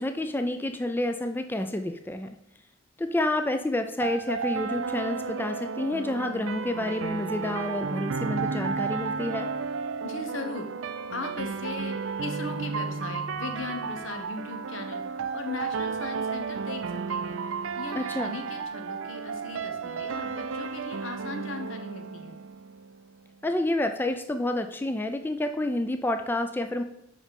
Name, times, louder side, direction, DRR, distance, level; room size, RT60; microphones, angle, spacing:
voice 1, 0.0-2.3 3.0-9.5 17.9-18.4 23.4-26.8, left 1 dB, 10° left, 7 dB, 0.3 m, -29 dB
sound 1, 4.0-23.0, right 5 dB, 85° right, 0.4 m, -33 dB
voice 2, 10.0-17.4 17.8-22.4, left 3 dB, 75° left, 6 dB, 1.0 m, -38 dB
5.4 x 5.0 x 5.3 m, 0.79 s
head